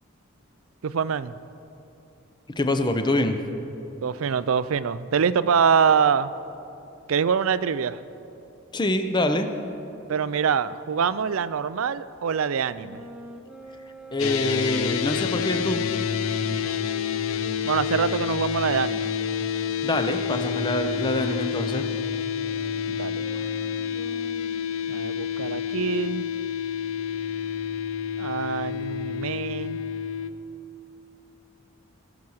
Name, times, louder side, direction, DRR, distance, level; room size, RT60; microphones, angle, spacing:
voice 1, 0.8-1.3 4.0-6.3 7.1-8.0 10.1-13.0 17.6-19.1 22.9-23.2 24.9-26.3 28.2-29.8, right 6 dB, 85° right, 15 dB, 0.4 m, -24 dB
voice 2, 2.6-3.4 8.7-9.5 14.1-15.8 19.8-21.9, left 1 dB, 20° left, 7 dB, 0.7 m, -25 dB
sound 1, 12.7-18.5 19.2-24.7, right 1 dB, 5° right, 1.1 m, -44 dB
sound 2, 14.2-30.3, left 8 dB, 85° left, 0.6 m, -28 dB
19.5 x 7.1 x 6.4 m, 2.8 s
head